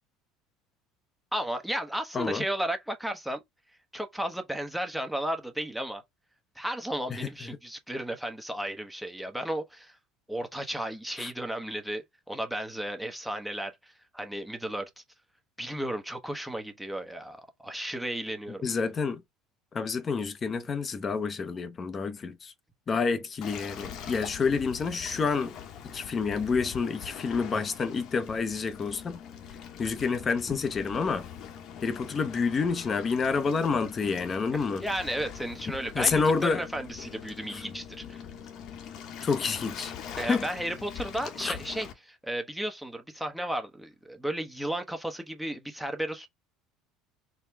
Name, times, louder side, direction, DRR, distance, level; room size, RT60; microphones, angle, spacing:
voice 1, 1.3-3.4 3.9-6.0 6.6-10.0 10.3-15.0 15.6-18.6 34.5-38.2 40.2-46.3, right 1 dB, ahead, 0.9 m, -34 dB
voice 2, 7.1-7.6 11.2-11.3 18.6-19.2 19.7-22.5 22.9-25.5 25.9-29.2 29.8-31.3 31.8-34.8 35.9-36.7 37.5-37.6 39.2-39.9 40.2-40.5 41.4-41.5, left 5 dB, 30° left, 0.7 m, -28 dB
Waves surf, 23.4-41.9, left 8 dB, 60° left, 1.0 m, -43 dB
4.2 x 2.2 x 3.4 m
supercardioid pair, 95°, 0 cm